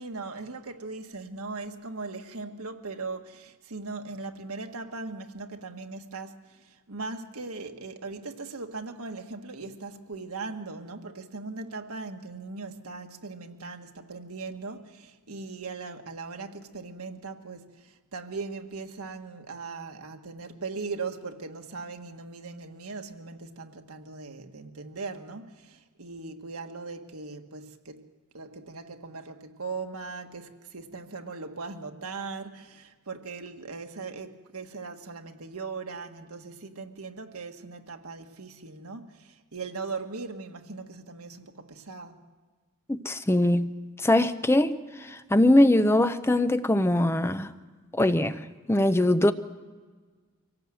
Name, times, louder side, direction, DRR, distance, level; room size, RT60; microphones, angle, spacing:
voice 1, 0.0-28.1 28.3-42.3, right 4 dB, 85° right, 1.5 m, -39 dB
voice 2, 42.9-43.7 44.0-47.5 47.9-48.4 48.7-49.3, left 1 dB, 10° left, 0.6 m, -22 dB
24.5 x 17.5 x 7.7 m
head